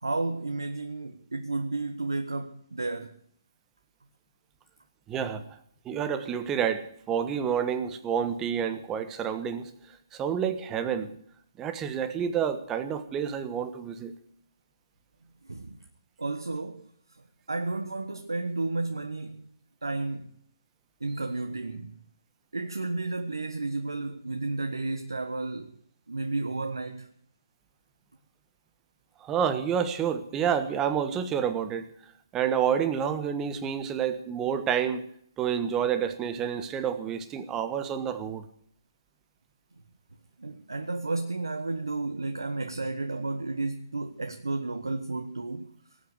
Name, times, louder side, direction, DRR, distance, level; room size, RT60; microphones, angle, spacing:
voice 1, 0.0-3.2 15.4-15.8 16.2-16.9 17.5-19.5 19.8-20.3 21.0-22.0 22.5-25.7 26.1-27.1 40.4-45.7, right 3 dB, 85° right, 1.3 m, -32 dB
voice 2, 5.1-5.6 5.8-11.2 11.6-14.1 29.2-35.1 35.4-38.5, right 8 dB, 15° right, 1.3 m, -29 dB
19.0 x 8.8 x 7.8 m
figure-of-eight pair, 140°, 2 cm